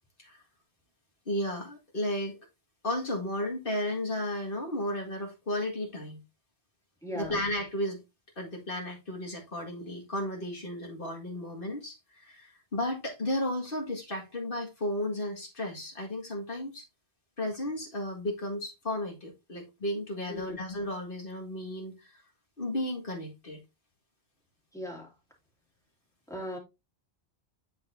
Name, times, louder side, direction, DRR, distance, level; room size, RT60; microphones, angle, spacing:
voice 1, 1.3-2.4 2.8-6.2 7.1-8.0 8.4-16.8 17.4-22.2 22.6-23.6, left 1 dB, 60° left, 2.1 m, -34 dB
voice 2, 7.0-7.4 20.3-20.6 24.7-25.1 26.3-26.6, left 1 dB, 5° left, 2.3 m, -38 dB
10.5 x 4.2 x 2.6 m
omnidirectional pair, 1.1 m